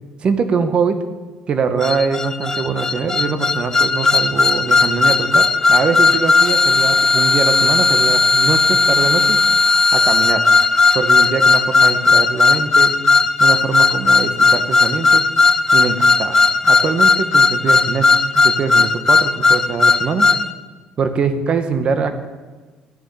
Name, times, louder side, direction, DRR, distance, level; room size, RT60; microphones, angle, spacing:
voice 1, 0.2-1.0 1.5-9.4 9.9-10.4 10.9-12.9 13.4-15.2 15.7-20.3 21.0-22.3, right 5 dB, 45° right, 9 dB, 1.6 m, -22 dB
sound 1, 1.8-20.4, left 3 dB, 20° left, 0.7 m, -15 dB
14.0 x 6.7 x 9.5 m, 1.3 s
supercardioid pair, 80°, 2 cm